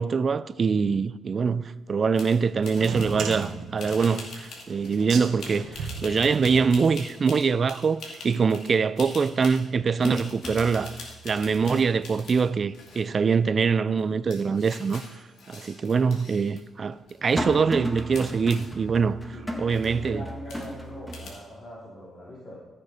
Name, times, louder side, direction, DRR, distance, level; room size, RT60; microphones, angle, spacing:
voice 1, 0.0-10.9 11.2-15.0 15.5-19.2 19.6-20.2, right 5 dB, 40° right, 0.4 m, -24 dB
sound 1, 2.1-2.4 2.6-3.5 3.8-8.7 9.0-9.6 10.0-12.4 12.7-13.4 14.0-14.1 14.3-16.6 16.9-17.6 18.1-18.7 19.3-19.4 19.6-19.9 20.5-20.9 21.1-21.3, left 3 dB, 75° left, 2.5 m, -43 dB
sound 2, 2.6-3.1 3.5-4.3 4.5-6.8 7.2-7.3 8.7-8.8 9.3-14.5 14.9-15.0 15.9-21.2, equal, 5° left, 1.5 m, -37 dB
sound 3, 2.7-7.3, right 5 dB, 75° right, 1.4 m, -36 dB
voice 2, 19.7-22.6, left 1 dB, 35° left, 3.1 m, -41 dB
14.0 x 6.7 x 4.9 m
cardioid pair, 100°, 0 cm